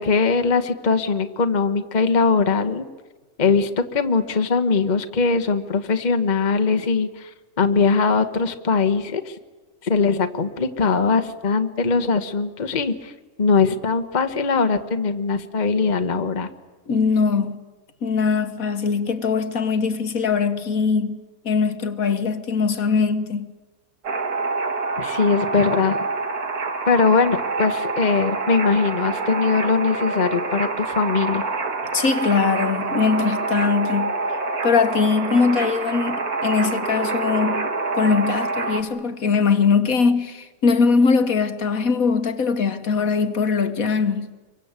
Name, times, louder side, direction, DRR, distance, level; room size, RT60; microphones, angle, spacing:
voice 1, 0.0-2.8 3.4-7.3 7.6-9.3 9.8-13.1 13.4-16.5 25.0-26.0 26.9-31.4, left 4 dB, 30° left, 1.2 m, -21 dB
voice 2, 16.9-17.6 18.0-21.2 21.4-23.5 31.9-34.1 34.6-37.7 37.9-44.3, left 5 dB, 65° left, 1.7 m, -21 dB
sound 1, 24.0-38.8, right 3 dB, 80° right, 2.5 m, -26 dB
26.5 x 23.5 x 8.2 m
omnidirectional pair, 1.6 m